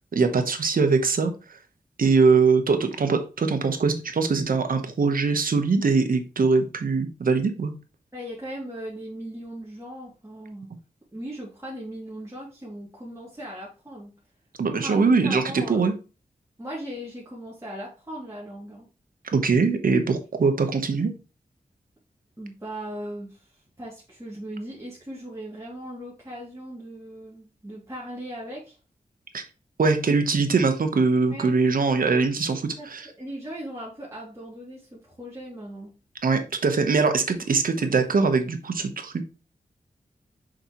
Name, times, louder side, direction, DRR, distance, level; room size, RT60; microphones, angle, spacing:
voice 1, 0.1-1.6 2.0-7.7 14.6-15.9 19.2-21.1 29.3-29.4 29.8-33.1 36.2-39.2, right 4 dB, 75° right, 7 dB, 1.2 m, -22 dB
voice 2, 8.1-10.7 11.1-14.1 14.8-15.8 16.6-18.9 22.4-28.8 31.3-31.5 32.8-32.9 33.2-35.9, equal, 20° right, -6 dB, 2.7 m, -38 dB
6.5 x 5.7 x 3.1 m, 0.33 s
wide cardioid pair, 70°, 15 cm